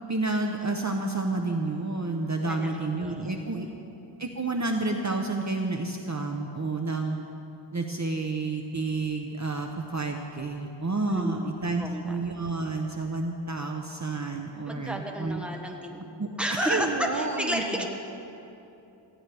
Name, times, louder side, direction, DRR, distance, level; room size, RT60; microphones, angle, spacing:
voice 1, 0.1-3.7 4.2-7.2 7.7-15.4 16.2-17.9, right 3 dB, 40° right, 3 dB, 0.9 m, -30 dB
voice 2, 3.0-3.6 11.1-11.5 11.7-12.1 14.7-16.0 16.4-17.9, equal, ahead, 1 dB, 1.6 m, -32 dB
19.5 x 14.5 x 3.5 m, 2.9 s
wide cardioid pair, 50°, 45 cm